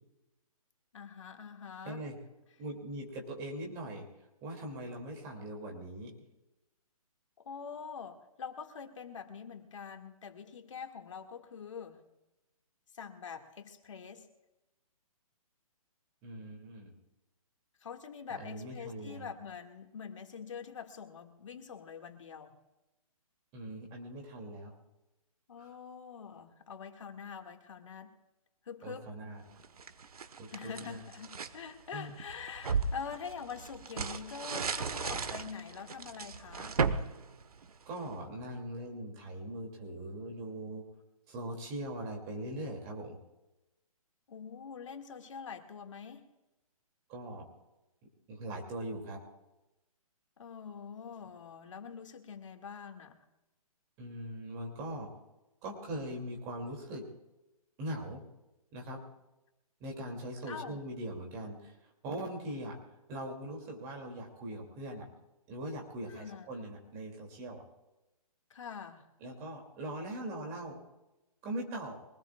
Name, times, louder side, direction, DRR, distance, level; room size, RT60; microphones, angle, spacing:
voice 1, 0.9-2.0 7.4-12.0 12.9-14.3 17.8-22.5 25.5-28.1 28.7-29.1 30.5-36.8 44.3-46.3 50.4-53.2 60.5-60.8 66.1-66.5 68.5-69.1, left 6 dB, 55° left, 4 dB, 2.1 m, -45 dB
voice 2, 1.8-2.2 2.6-4.1 4.4-6.1 16.2-16.9 18.3-19.3 23.5-24.7 25.6-25.7 28.8-29.4 30.4-31.0 31.9-32.2 37.9-40.8 41.3-43.2 47.1-47.5 48.3-49.2 54.0-55.1 55.6-57.0 57.8-58.2 58.7-59.0 59.8-61.7 62.0-62.8 63.1-65.1 65.5-67.6 69.2-70.8 71.4-72.0, right 1 dB, 15° right, 1 dB, 2.8 m, -41 dB
sound 1, 29.6-31.6 32.1-38.2, right 5 dB, 80° right, 1.3 m, -36 dB
24.5 x 19.0 x 2.4 m, 0.97 s
hypercardioid pair, 170°, 19 cm